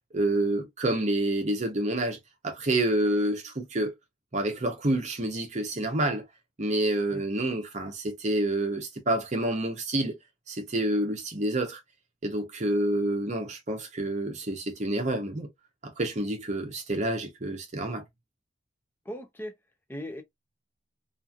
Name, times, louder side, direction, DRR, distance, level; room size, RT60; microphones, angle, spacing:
voice 1, 0.1-2.2 2.4-3.9 4.3-6.2 6.6-10.1 10.5-11.8 12.2-15.5 15.8-18.0, right 1 dB, 35° right, 0.8 m, -28 dB
voice 2, 7.1-7.6 19.1-19.5 19.9-20.2, equal, 10° left, 0.5 m, -39 dB
3.0 x 2.5 x 2.3 m
head